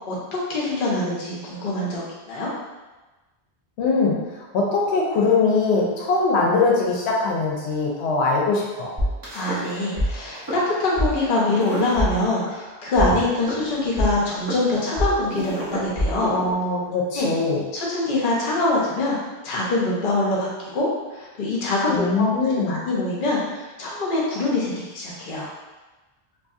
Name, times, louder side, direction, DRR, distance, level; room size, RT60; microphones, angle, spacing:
voice 1, 0.5-2.5 9.3-16.3 17.1-17.3 17.7-19.2 19.4-20.9 21.1-22.3 22.7-25.5, left 2 dB, 55° left, -5 dB, 0.7 m, -24 dB
voice 2, 3.8-4.1 4.5-8.9 16.3-17.6 21.9-22.8, left 3 dB, 85° left, -2 dB, 0.9 m, -21 dB
sound 1, 9.0-10.1 10.3-10.6 11.0-11.1 11.6-12.6 13.0-17.0, equal, 25° right, 0.5 m, -26 dB
2.6 x 2.6 x 2.4 m, 1.2 s
omnidirectional pair, 1.1 m